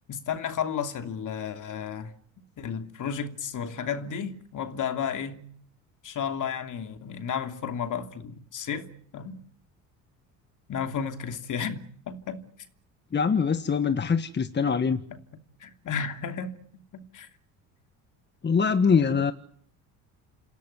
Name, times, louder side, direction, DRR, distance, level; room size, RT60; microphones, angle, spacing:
voice 1, 0.1-2.1 2.6-5.5 6.0-9.4 10.7-12.4 14.9-15.2 15.6-16.6 16.9-17.3 18.9-19.2, left 7 dB, 45° left, 2.9 m, -33 dB
voice 2, 13.1-15.0 18.4-19.3, left 6 dB, 25° left, 1.4 m, -23 dB
28.0 x 17.0 x 9.6 m
supercardioid pair, 85°, 41 cm